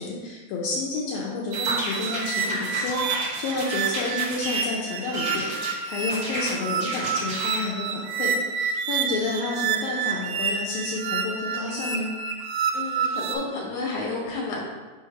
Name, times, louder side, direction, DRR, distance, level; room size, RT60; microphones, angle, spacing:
voice 1, 0.0-12.1, left 3 dB, 80° left, -4 dB, 2.5 m, -30 dB
sound 1, 1.5-4.7 5.1-5.7 6.1-7.7, right 1 dB, 45° right, 1.9 m, -32 dB
sound 2, 1.5-13.4, right 6 dB, 80° right, 1.9 m, -29 dB
voice 2, 12.7-14.6, left 3 dB, 60° left, -3 dB, 2.8 m, -31 dB
6.3 x 3.2 x 5.7 m, 1.3 s
omnidirectional pair, 4.1 m